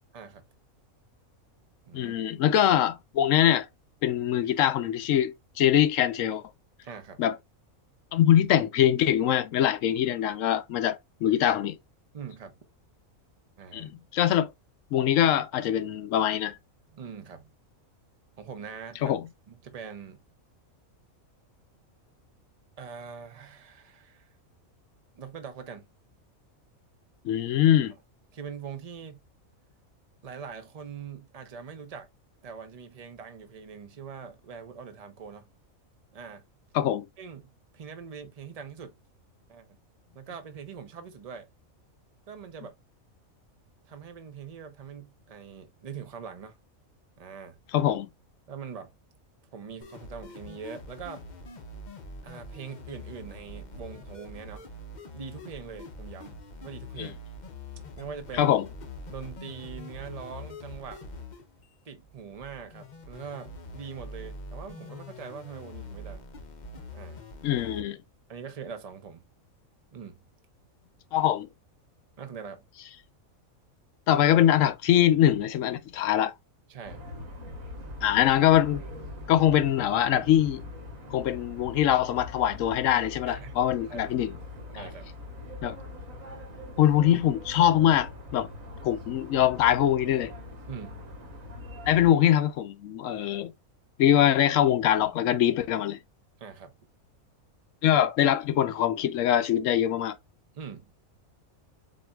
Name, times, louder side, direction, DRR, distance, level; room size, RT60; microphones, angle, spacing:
voice 1, 0.1-0.4 1.9-2.1 6.8-7.2 12.1-12.5 13.6-13.9 16.9-17.5 18.4-19.2 19.5-20.2 22.8-24.3 25.1-25.9 28.3-29.2 30.2-32.1 32.4-35.5 36.1-36.4 37.2-39.0 39.5-39.8 40.1-41.5 42.3-42.7 43.9-46.6 47.2-47.6 48.5-48.9 49.5-51.2 52.2-54.7 55.1-56.3 56.6-57.2 58.0-58.5 59.1-61.0 61.8-66.3 66.9-67.2 68.3-69.2 69.9-70.2 72.2-72.6 76.7-77.0 83.3-83.6 83.9-84.1 84.7-85.1 90.7-91.0 96.4-96.7 100.5-100.8, right 6 dB, 35° right, 0.7 m, -42 dB
voice 2, 1.9-3.7 4.0-6.4 7.2-7.4 8.1-11.8 13.7-14.5 14.9-16.6 19.0-19.3 27.2-27.9 36.7-37.0 47.7-48.1 57.0-57.1 58.3-58.7 67.4-68.0 71.1-71.5 74.1-76.3 78.0-78.8 79.3-80.6 81.1-84.3 84.7-84.9 85.6-85.8 86.8-88.5 88.8-90.3 91.9-93.5 94.0-96.0 97.8-100.2, left 11 dB, 70° left, 0.9 m, -23 dB
sound 1, 49.8-67.8, left 2 dB, 40° left, 0.7 m, -44 dB
sound 2, 76.8-92.1, left 2 dB, 70° right, 2.1 m, -42 dB
7.4 x 2.7 x 2.3 m
omnidirectional pair, 1.5 m